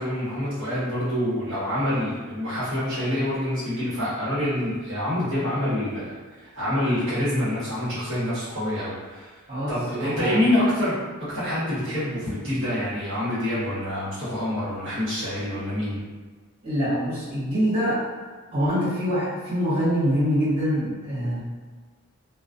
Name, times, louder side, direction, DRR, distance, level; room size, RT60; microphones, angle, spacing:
voice 1, 0.0-9.3 9.7-16.0, left 1 dB, 60° right, -11 dB, 1.1 m, -26 dB
voice 2, 9.5-10.4 16.6-18.1 18.5-21.4, equal, 25° right, -14 dB, 1.0 m, -25 dB
2.3 x 2.2 x 2.5 m, 1.4 s
head